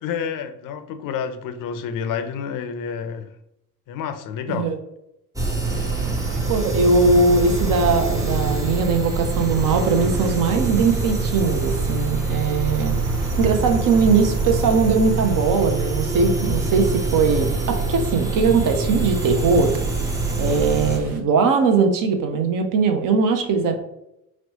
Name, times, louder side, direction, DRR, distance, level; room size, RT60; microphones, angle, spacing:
voice 1, 0.0-3.3 3.9-4.7, left 7 dB, 50° left, 9 dB, 0.5 m, -29 dB
sound 1, 5.4-21.0, right 3 dB, 10° right, 0.6 m, -25 dB
sound 2, 5.6-21.2, right 3 dB, 85° right, 0.6 m, -35 dB
voice 2, 6.5-13.0 13.4-19.7 20.4-23.8, right 4 dB, 50° right, 6 dB, 0.7 m, -20 dB
4.1 x 2.1 x 2.8 m, 0.82 s
hypercardioid pair, 55°, 44 cm